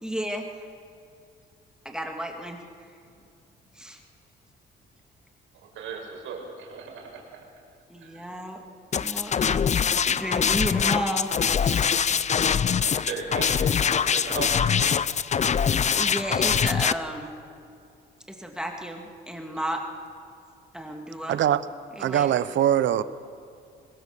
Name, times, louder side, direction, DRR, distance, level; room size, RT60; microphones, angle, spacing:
voice 1, 0.0-0.5 1.8-2.6 3.7-4.0 7.9-8.6 9.0-9.6 10.0-11.3 11.5-11.9 16.0-17.3 18.3-19.8 20.7-21.4 22.0-22.3, equal, 5° right, 2 dB, 2.4 m, -33 dB
voice 2, 5.7-7.4 8.0-8.2 12.8-13.6 14.1-14.5, right 5 dB, 85° right, 1 dB, 5.2 m, -36 dB
sound 1, 8.9-16.9, left 7 dB, 35° left, 0.6 m, -23 dB
voice 3, 21.3-21.6 22.0-23.0, right 11 dB, 70° right, 15 dB, 0.9 m, -22 dB
22.5 x 21.5 x 6.9 m, 2.4 s
cardioid pair, 90°, 20 cm